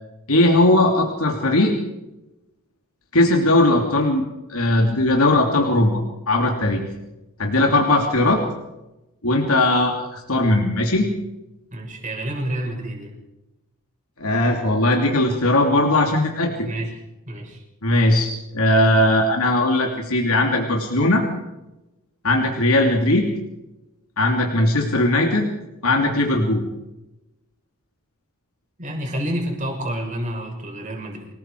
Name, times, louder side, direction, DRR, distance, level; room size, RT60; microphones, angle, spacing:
voice 1, 0.3-1.7 3.1-5.9 6.3-6.8 7.4-8.4 9.2-11.1 14.2-16.7 17.8-21.2 22.2-23.3 24.2-25.5 25.8-26.6, left 1 dB, 75° left, 1 dB, 3.0 m, -19 dB
voice 2, 11.7-13.1 16.7-16.9 17.3-17.6 28.8-31.3, right 1 dB, 35° right, 1 dB, 6.3 m, -29 dB
27.5 x 20.0 x 4.9 m, 0.97 s
head